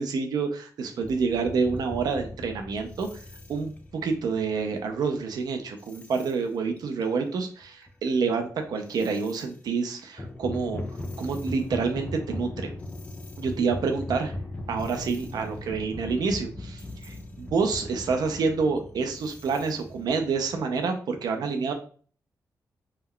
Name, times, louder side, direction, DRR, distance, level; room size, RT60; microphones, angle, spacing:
voice 1, 0.0-3.1 3.5-3.7 4.0-10.8 11.2-12.7 13.4-14.4 14.7-21.7, right 5 dB, 75° right, 5 dB, 0.4 m, -28 dB
sound 1, 1.0-5.3 5.8-6.3 6.8-7.1 7.6-9.5 10.0-20.8, left 1 dB, 20° left, 0.3 m, -39 dB
2.2 x 2.2 x 3.5 m, 0.42 s
wide cardioid pair, 125°, 7 cm